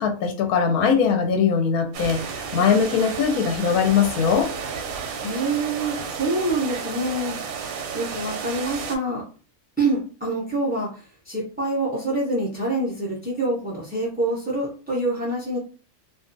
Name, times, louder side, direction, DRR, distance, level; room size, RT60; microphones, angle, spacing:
voice 1, 0.0-2.2 2.5-4.5, left 6 dB, 80° left, 4 dB, 1.1 m, -20 dB
sound 1, 1.9-9.0, right 6 dB, 70° right, 0.9 m, -32 dB
voice 2, 5.2-7.4 7.9-9.2 9.8-15.6, right 2 dB, 15° right, -6 dB, 0.3 m, -26 dB
2.4 x 2.4 x 2.5 m, 0.37 s
omnidirectional pair, 1.6 m